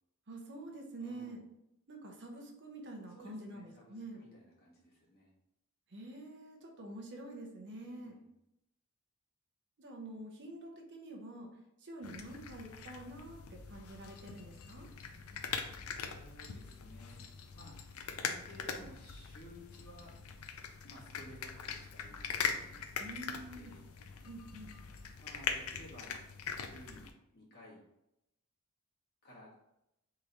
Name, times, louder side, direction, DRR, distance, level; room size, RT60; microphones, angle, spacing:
voice 1, 0.3-1.4 1.9-4.2 5.9-8.2 9.8-11.5 11.8-14.9 23.0-23.8 24.2-24.7, right 2 dB, 55° right, 2 dB, 0.8 m, -47 dB
voice 2, 1.0-1.4 3.1-5.3 7.7-8.3 15.8-17.2 17.5-17.7 18.0-20.1 20.8-23.2 23.5-23.8 25.2-26.1 26.5-27.8 29.2-29.5, left 1 dB, 45° left, -5 dB, 1.6 m, -55 dB
sound 1, 12.0-27.1, left 6 dB, 70° left, 0.5 m, -42 dB
3.8 x 3.1 x 4.0 m, 0.84 s
head